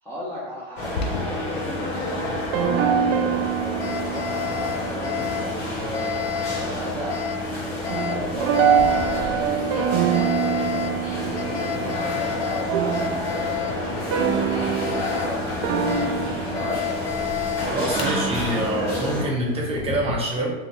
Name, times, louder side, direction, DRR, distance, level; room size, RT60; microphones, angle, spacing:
voice 1, 0.0-6.2 6.6-11.0 11.4-16.0 16.5-17.1, equal, 5° left, -9 dB, 0.6 m, -36 dB
Alarm, 0.8-20.2, left 8 dB, 85° left, 0.5 m, -32 dB
sound 1, 0.8-19.2, left 1 dB, 55° left, 1.4 m, -30 dB
sound 2, 1.2-1.6 2.5-6.3 6.5-7.3 7.9-13.7 14.1-15.2 15.6-16.8 18.0-19.5, right 8 dB, 45° right, 0.5 m, -25 dB
voice 2, 17.7-20.5, right 1 dB, 20° right, -3 dB, 0.9 m, -26 dB
2.6 x 2.3 x 3.2 m, 1.1 s
hypercardioid pair, 105°, 30 cm